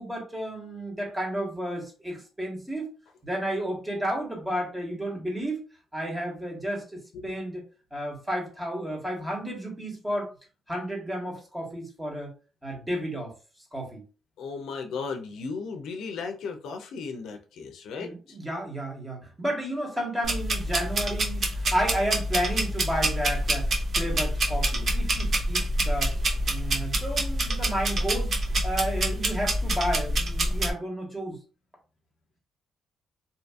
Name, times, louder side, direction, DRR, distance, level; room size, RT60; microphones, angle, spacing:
voice 1, 0.0-2.9 3.2-5.6 5.9-7.6 7.9-10.3 10.7-12.3 12.6-13.3 13.7-14.0 18.0-26.1 26.5-28.4 28.6-31.4, right 1 dB, 15° right, 0 dB, 1.3 m, -32 dB
voice 2, 14.4-18.4, left 5 dB, 80° left, 5 dB, 0.5 m, -36 dB
sound 1, 20.2-30.7, right 1 dB, 50° right, 0.7 m, -27 dB
2.7 x 2.5 x 2.4 m, 0.34 s
cardioid pair, 90°, 0 cm